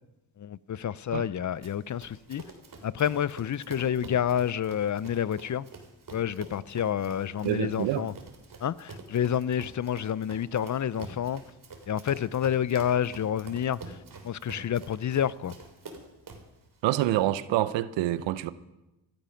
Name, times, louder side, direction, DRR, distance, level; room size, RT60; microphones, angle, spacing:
voice 1, 0.4-2.4 2.8-5.7 6.1-8.1 8.6-11.4 11.9-14.0 14.2-15.6, left 9 dB, 45° left, 0.6 m, -29 dB
Run, 1.6-16.6, right 3 dB, 50° right, 3.4 m, -47 dB
voice 2, 7.4-8.1 16.8-18.5, right 14 dB, 90° right, 0.8 m, -27 dB
15.5 x 12.5 x 5.8 m
supercardioid pair, 60°, 43 cm